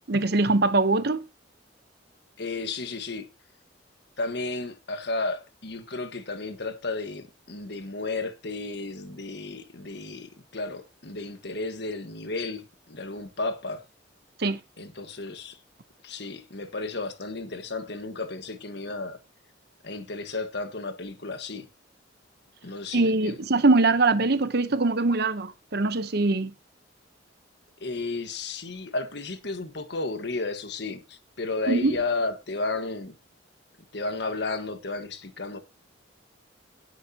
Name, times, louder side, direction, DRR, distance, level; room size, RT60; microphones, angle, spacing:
voice 1, 0.1-1.2 14.4-14.6 22.9-26.5 31.7-31.9, right 3 dB, 55° right, 0.9 m, -22 dB
voice 2, 2.4-3.3 4.2-13.8 14.8-15.6 16.0-19.2 19.8-21.7 22.6-23.4 27.8-33.1 33.9-35.6, left 3 dB, 60° left, 1.5 m, -33 dB
17.0 x 7.7 x 2.9 m
head